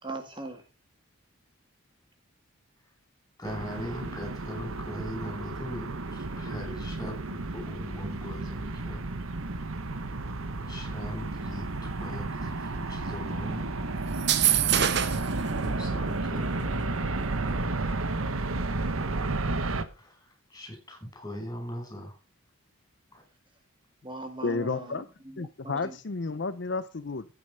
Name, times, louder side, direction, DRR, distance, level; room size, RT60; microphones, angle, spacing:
voice 1, 0.0-0.6 15.5-15.6 24.0-25.9, right 2 dB, 20° right, 6 dB, 1.7 m, -40 dB
voice 2, 3.4-9.0 10.7-13.7 15.6-18.5 19.8-22.1 23.1-23.2, equal, 15° left, 2 dB, 6.3 m, -40 dB
sound 1, 3.4-19.8, right 2 dB, 75° right, 1.1 m, -32 dB
sound 2, 14.1-15.3, right 10 dB, 50° right, 1.1 m, -24 dB
voice 3, 24.4-25.1 25.4-27.3, left 3 dB, 55° left, 13 dB, 0.6 m, -31 dB
10.5 x 9.4 x 5.5 m, 0.33 s
head